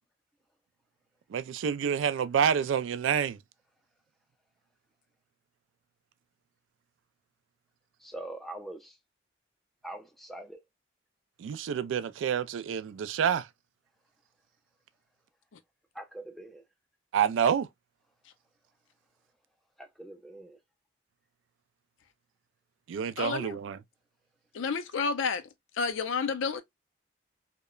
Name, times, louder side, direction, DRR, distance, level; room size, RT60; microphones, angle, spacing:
voice 1, 1.3-3.4 11.4-13.5 17.1-17.7 22.9-23.8, right 8 dB, 85° right, 0.3 m, -28 dB
voice 2, 8.0-9.0 9.8-10.6 15.9-16.6 19.8-20.6, right 1 dB, ahead, 0.3 m, -43 dB
voice 3, 23.2-23.6 24.5-25.4 25.7-26.6, left 5 dB, 90° left, 0.4 m, -30 dB
2.8 x 2.1 x 2.2 m
head